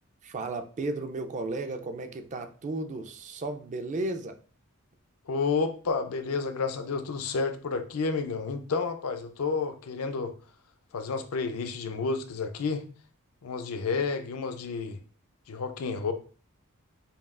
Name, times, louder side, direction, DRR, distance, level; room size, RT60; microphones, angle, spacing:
voice 1, 0.2-4.4, right 2 dB, 35° right, 0.4 m, -34 dB
voice 2, 5.3-10.3 10.9-12.8 13.4-15.0 15.5-16.1, left 4 dB, 75° left, 0.5 m, -30 dB
5.3 x 2.3 x 2.4 m
head